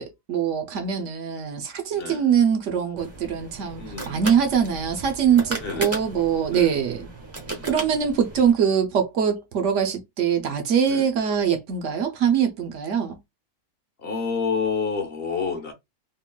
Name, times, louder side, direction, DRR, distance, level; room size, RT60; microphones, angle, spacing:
voice 1, 0.0-7.1 7.6-13.2, right 7 dB, 65° right, 0.9 m, -23 dB
voice 2, 1.9-2.3 3.8-4.2 5.6-5.9 6.5-6.8 7.5-7.7 10.8-11.1 14.0-15.7, left 5 dB, 50° left, 0.9 m, -29 dB
sound 1, 3.0-8.5, right 2 dB, 15° right, 0.5 m, -35 dB
3.7 x 2.2 x 2.2 m
omnidirectional pair, 1.4 m